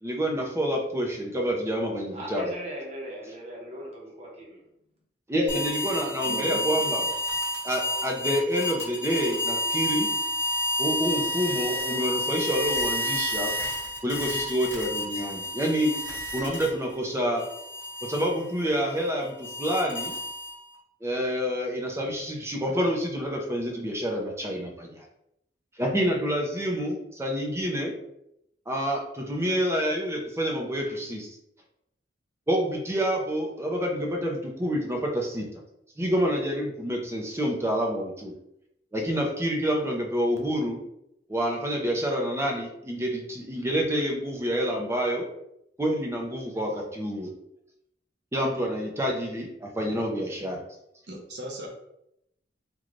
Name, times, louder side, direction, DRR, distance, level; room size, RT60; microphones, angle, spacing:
voice 1, 0.0-2.5 5.3-7.0 7.6-10.1 10.8-13.5 14.0-15.9 16.3-17.4 18.0-20.1 21.0-25.1 25.8-27.9 28.7-31.4 32.5-35.5 36.0-38.3 38.9-40.8 41.3-45.3 45.8-47.3 48.3-50.6, equal, 15° right, 0 dB, 0.6 m, -28 dB
voice 2, 2.1-4.6, right 1 dB, 35° right, -4 dB, 0.9 m, -39 dB
sound 1, 5.5-16.9 17.4-20.7, left 1 dB, 15° left, 1.2 m, -30 dB
voice 3, 6.2-6.7 51.1-51.7, equal, 70° right, -1 dB, 0.8 m, -38 dB
3.1 x 2.3 x 3.8 m, 0.78 s
head